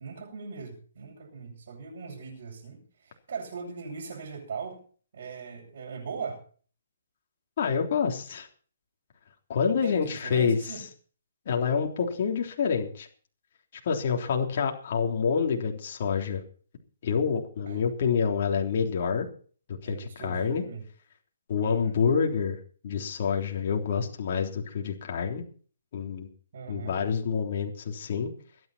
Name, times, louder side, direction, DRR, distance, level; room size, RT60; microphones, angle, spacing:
voice 1, 0.0-4.8 5.1-6.4 9.8-10.8 17.7-17.8 19.8-20.8 21.6-21.9 26.5-27.0, right 5 dB, 60° right, -5 dB, 7.6 m, -40 dB
voice 2, 7.6-8.5 9.5-10.6 11.4-13.1 13.8-16.4 17.0-19.3 19.8-20.6 21.5-22.6 22.8-25.4 25.9-26.3 26.7-28.3, left 6 dB, 45° left, 1 dB, 3.5 m, -27 dB
24.0 x 9.8 x 4.3 m, 0.42 s
hypercardioid pair, 165°, 0 cm